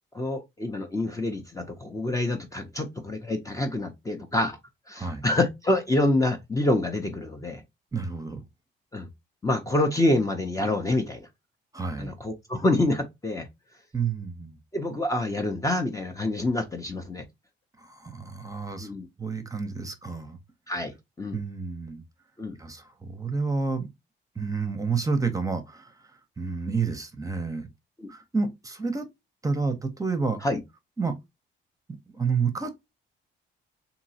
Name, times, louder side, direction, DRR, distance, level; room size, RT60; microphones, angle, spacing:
voice 1, 0.1-4.6 4.9-7.6 8.9-9.1 9.4-11.2 12.0-13.5 14.7-17.2 18.8-19.1 20.7-21.4 22.4-22.6 28.0-28.1 30.4-30.6, left 2 dB, 15° left, 0.6 m, -27 dB
voice 2, 5.0-5.3 7.9-8.4 11.7-12.1 13.9-14.6 17.8-18.9 19.2-20.4 21.3-22.0 22.6-23.9 24.4-25.9 26.4-27.7 28.1-29.1 29.4-30.4 31.0-31.2 31.9-32.7, right 4 dB, 15° right, 0.7 m, -29 dB
2.9 x 2.8 x 2.7 m
cardioid pair, 90°, 20 cm